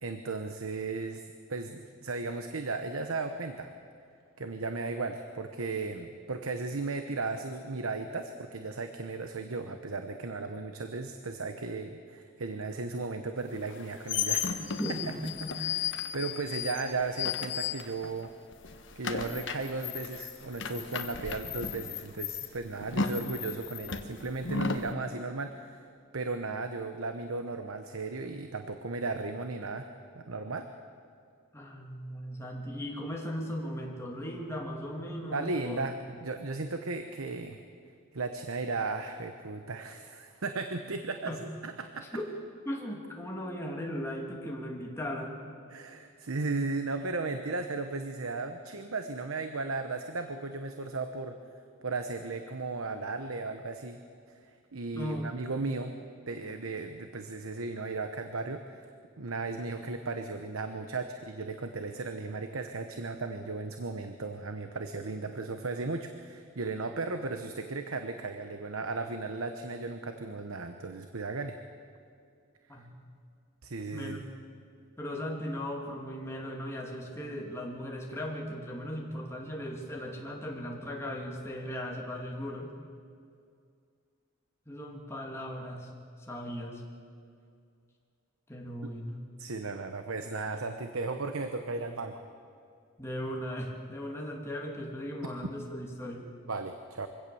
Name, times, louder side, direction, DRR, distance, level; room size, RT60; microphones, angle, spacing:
voice 1, 0.0-3.7 4.4-14.6 15.6-18.3 19.0-25.8 26.1-29.9 30.2-30.7 35.3-37.6 38.1-41.3 41.6-42.1 45.7-51.4 51.8-54.0 54.4-55.9 56.3-58.8 59.2-71.6 73.6-74.2 88.8-88.9 89.4-92.3 95.4-95.5 96.5-97.1, right 3 dB, 75° right, 7 dB, 1.0 m, -35 dB
sound 1, 13.6-18.2 18.5-24.9, left 6 dB, 55° left, 1.2 m, -34 dB
voice 2, 14.8-15.5 31.5-35.8 41.3-41.4 42.1-42.3 42.7-45.4 54.9-55.3 72.7-72.9 73.9-74.2 75.0-82.7 84.7-85.9 86.2-86.8 88.5-89.2 93.0-96.3, equal, 10° left, -1 dB, 2.5 m, -37 dB
23.5 x 16.5 x 7.0 m, 2.3 s
head